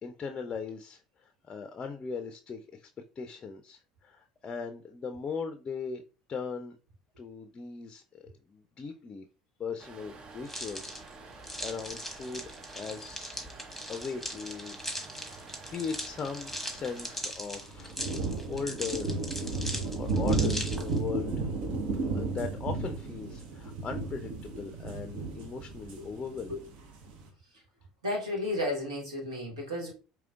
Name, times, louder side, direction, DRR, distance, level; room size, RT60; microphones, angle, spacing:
voice 1, 0.0-2.9 3.2-6.0 6.3-6.8 7.2-9.3 9.6-13.4 13.9-14.8 15.2-18.2 18.5-19.2 19.9-21.5 22.1-26.6, left 5 dB, 35° left, 0.4 m, -39 dB
sound 1, 9.8-17.2, right 4 dB, 40° right, 0.7 m, -49 dB
sound 2, 10.4-21.0, equal, ahead, 1.3 m, -40 dB
sound 3, 15.6-15.7 15.9-16.0 16.4-16.5 16.8-17.2 17.6-27.3, right 3 dB, 60° right, 0.9 m, -33 dB
voice 2, 28.0-29.9, left 1 dB, 85° right, 1.4 m, -33 dB
4.9 x 3.0 x 2.4 m
hypercardioid pair, 65°, 3 cm